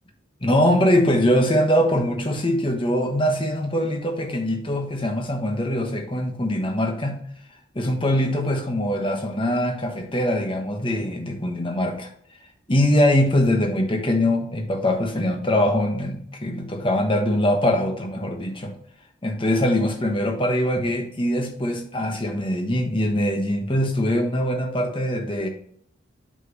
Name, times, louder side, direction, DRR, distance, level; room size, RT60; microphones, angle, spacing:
voice 1, 0.4-7.2 7.7-12.1 12.7-18.7 19.2-25.5, left 1 dB, 25° left, 4 dB, 1.1 m, -22 dB
7.5 x 5.3 x 3.0 m, 0.63 s
head